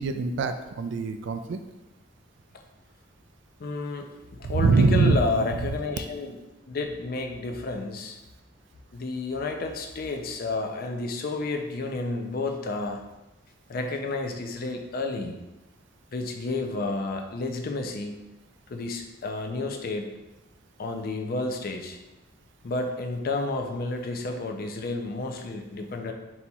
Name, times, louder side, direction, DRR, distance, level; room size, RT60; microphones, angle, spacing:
voice 1, 0.0-1.6 4.4-5.5, right 4 dB, 65° right, 9 dB, 0.3 m, -23 dB
voice 2, 3.6-6.4 6.7-8.2 8.9-13.0 13.7-15.4 16.1-18.2 18.7-20.1 20.8-22.0 22.6-26.1, left 3 dB, 50° left, 4 dB, 0.4 m, -31 dB
4.2 x 4.1 x 2.3 m, 1.0 s
head